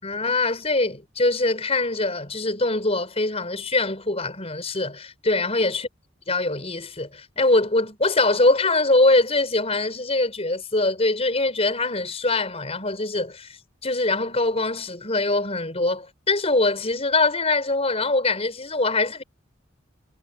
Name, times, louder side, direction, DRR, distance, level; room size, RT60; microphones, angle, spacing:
voice 1, 0.0-5.9 6.3-19.2, left 2 dB, 30° left, 5.8 m, -23 dB
head